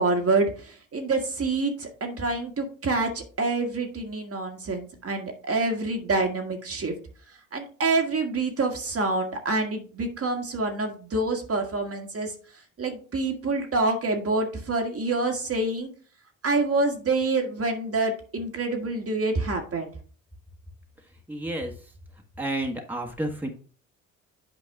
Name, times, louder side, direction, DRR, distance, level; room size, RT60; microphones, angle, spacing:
voice 1, 0.0-6.9 7.5-12.3 12.8-15.9 16.4-19.9, right 3 dB, 40° right, 3 dB, 1.7 m, -27 dB
voice 2, 21.3-21.7 22.4-23.5, right 1 dB, 5° right, 2 dB, 1.5 m, -30 dB
8.5 x 4.7 x 3.6 m, 0.40 s
hypercardioid pair, 60°, 38 cm